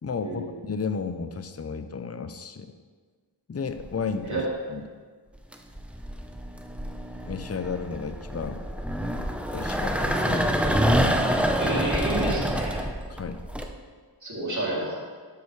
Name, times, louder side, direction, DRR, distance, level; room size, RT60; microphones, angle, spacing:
voice 1, 0.0-2.7 3.5-4.4 4.7-4.8 7.3-8.7 9.5-10.8 13.1-13.4, left 5 dB, 35° left, 9 dB, 0.6 m, -33 dB
sound 1, 3.8-4.2 5.4-13.6, equal, 5° right, 0.7 m, -27 dB
voice 2, 11.6-12.8 14.2-15.0, right 2 dB, 40° right, -5 dB, 2.8 m, -29 dB
12.5 x 6.5 x 3.2 m, 1.6 s
wide cardioid pair, 50°, 44 cm